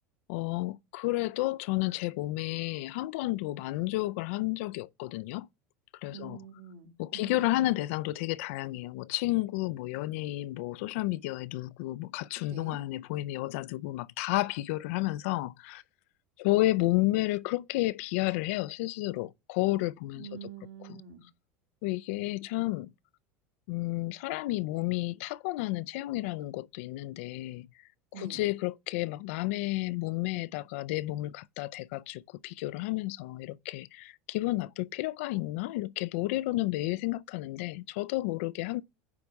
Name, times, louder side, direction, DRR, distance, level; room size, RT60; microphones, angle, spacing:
voice 1, 0.3-5.5 5.9-6.4 7.0-15.8 16.4-20.5 20.9-21.0 21.8-22.9 23.7-27.7 28.2-38.8, left 18 dB, 70° left, 0.4 m, -31 dB
voice 2, 6.1-7.7 12.5-12.8 20.1-21.2 28.1-28.4, right 8 dB, 80° right, 2.6 m, -46 dB
9.7 x 3.4 x 5.2 m
supercardioid pair, 105°, 7 cm